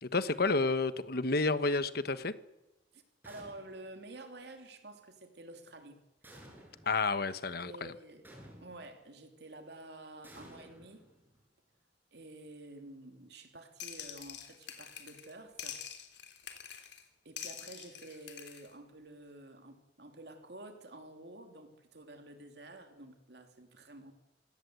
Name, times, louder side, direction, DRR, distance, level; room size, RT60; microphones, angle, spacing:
voice 1, 0.0-2.3 6.9-7.9, left 3 dB, 60° left, 13 dB, 1.2 m, -30 dB
voice 2, 2.9-6.0 7.5-8.2 8.6-11.1 12.1-15.8 17.2-24.1, right 2 dB, 65° right, 5 dB, 3.2 m, -50 dB
sound 1, 3.2-4.0 6.2-7.0 8.2-9.0 10.2-11.5, right 1 dB, 10° right, 5.8 m, -55 dB
sound 2, 13.8-15.3 15.6-17.0 17.4-18.7, left 8 dB, 75° left, 3.4 m, -46 dB
26.5 x 18.0 x 8.1 m, 0.97 s
head